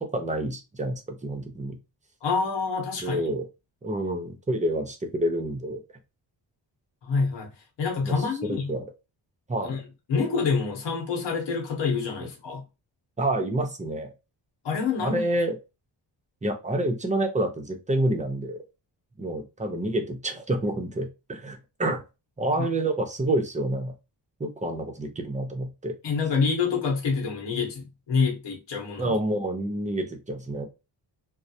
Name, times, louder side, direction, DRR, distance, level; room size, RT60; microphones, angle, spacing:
voice 1, 0.0-1.8 3.0-3.4 3.8-5.8 8.0-8.2 8.4-8.9 9.5-9.8 13.2-14.1 15.0-15.6 16.4-18.6 19.2-22.0 22.4-23.9 24.4-25.9 29.0-30.6, right 1 dB, 15° right, 0.6 m, -28 dB
voice 2, 2.2-3.3 7.0-7.5 7.8-8.7 9.6-9.8 10.1-12.6 14.6-15.2 22.6-22.7 26.0-29.1, left 5 dB, 70° left, 0.9 m, -27 dB
2.3 x 2.0 x 2.7 m
cardioid pair, 75°, 45 cm